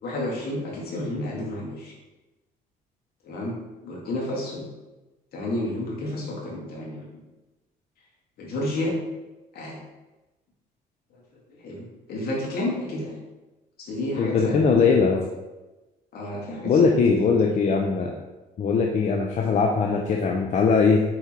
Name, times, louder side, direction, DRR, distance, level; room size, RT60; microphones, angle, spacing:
voice 1, 0.0-1.9 3.2-3.6 3.8-4.6 5.3-7.0 8.4-9.0 9.5-9.8 11.5-13.2 13.8-15.0 16.1-17.5, left 1 dB, 65° left, -3 dB, 2.5 m, -31 dB
voice 2, 14.2-15.2 16.6-18.1 18.6-21.0, left 5 dB, 45° left, 1 dB, 0.8 m, -20 dB
6.8 x 4.5 x 4.6 m, 1.1 s
cardioid pair, 110°, 17 cm